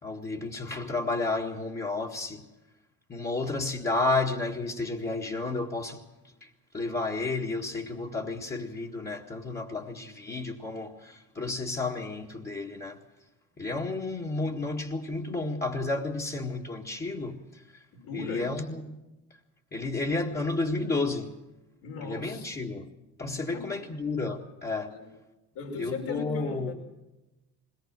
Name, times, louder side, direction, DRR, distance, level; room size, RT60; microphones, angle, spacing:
voice 1, 0.0-2.5 3.1-6.0 6.4-6.5 6.7-13.0 13.6-17.6 18.1-19.0 19.7-21.3 22.0-22.9 23.2-24.9 25.8-26.7, left 3 dB, 25° left, 1.9 m, -31 dB
voice 2, 17.9-18.5 21.8-22.5 23.5-23.8 24.9-25.1 25.5-26.7, left 4 dB, 70° left, 5.7 m, -37 dB
21.0 x 18.5 x 7.6 m
supercardioid pair, 90°, 40 cm